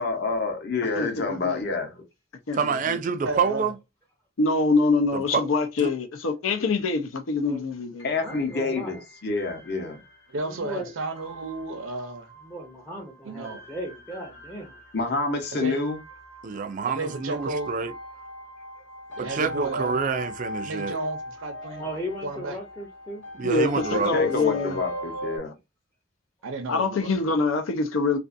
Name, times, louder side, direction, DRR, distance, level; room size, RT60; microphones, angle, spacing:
voice 1, 0.0-2.0 8.0-10.0 14.9-16.0 23.9-25.5, left 3 dB, 50° left, 0.8 m, -28 dB
voice 2, 1.0-1.6 2.5-3.0 4.4-8.1 23.4-24.8 26.7-28.2, left 3 dB, 85° left, 0.6 m, -25 dB
voice 3, 2.5-3.8 5.1-5.5 5.8-5.9 16.4-17.9 19.2-21.0 23.4-24.3, right 5 dB, 40° right, 0.3 m, -27 dB
voice 4, 3.3-3.7 10.3-12.3 13.3-13.6 15.5-15.7 16.8-17.7 19.2-20.0 20.6-21.9 22.2-22.5 26.4-27.4, right 2 dB, 80° right, 0.6 m, -32 dB
sound 1, 8.0-25.4, left 1 dB, 70° left, 1.0 m, -41 dB
voice 5, 8.1-9.0 10.4-10.9 12.4-14.8 21.8-23.2, equal, 10° left, 0.5 m, -37 dB
2.5 x 2.4 x 2.5 m
head